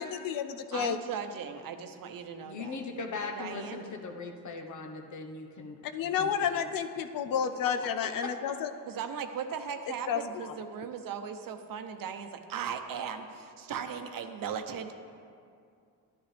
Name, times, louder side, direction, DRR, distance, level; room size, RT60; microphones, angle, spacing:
voice 1, 0.0-1.0 5.9-8.7 10.1-10.5, left 7 dB, 70° left, 8 dB, 0.6 m, -31 dB
voice 2, 0.7-2.8 3.2-3.8 8.9-14.9, right 7 dB, 70° right, 7 dB, 0.8 m, -38 dB
voice 3, 2.4-5.8 6.2-6.7 8.2-8.3, left 3 dB, 55° left, 4 dB, 1.1 m, -39 dB
11.0 x 11.0 x 3.4 m, 2.4 s
cardioid pair, 85°, 35 cm